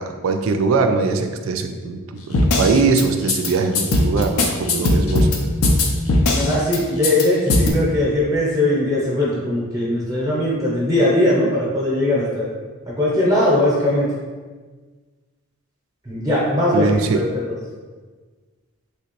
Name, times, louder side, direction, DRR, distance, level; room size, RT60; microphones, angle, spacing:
voice 1, 0.0-5.3 16.7-17.2, right 4 dB, 75° right, 6 dB, 0.3 m, -21 dB
sound 1, 2.3-3.0 3.3-3.5 3.7-5.4 5.6-6.8 7.0-7.2 7.5-7.7, left 2 dB, 85° left, 0.5 m, -18 dB
voice 2, 6.3-12.5 12.9-14.1 16.1-16.9 17.1-17.2, left 1 dB, 15° right, -6 dB, 0.6 m, -19 dB
3.3 x 2.8 x 2.9 m, 1.4 s
head